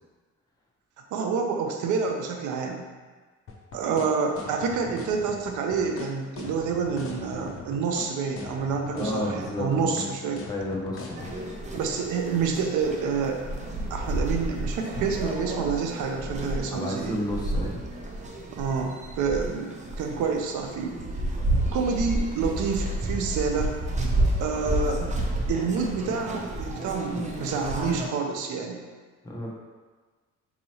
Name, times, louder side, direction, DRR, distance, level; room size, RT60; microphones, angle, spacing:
voice 1, 1.1-2.8 3.7-10.4 11.7-13.4 13.9-17.2 18.6-21.0 21.7-23.7 24.4-25.0 25.5-28.8, right 5 dB, 80° right, 3 dB, 0.6 m, -28 dB
sound 1, 3.5-11.4, left 4 dB, 45° left, 0.6 m, -39 dB
voice 2, 8.9-10.1 10.5-11.3 16.7-17.8 29.2-29.5, left 1 dB, 15° left, -3 dB, 0.7 m, -31 dB
sound 2, 11.2-28.1, right 1 dB, 25° right, 0.5 m, -30 dB
4.1 x 2.8 x 2.8 m, 1.4 s
cardioid pair, 90°, 30 cm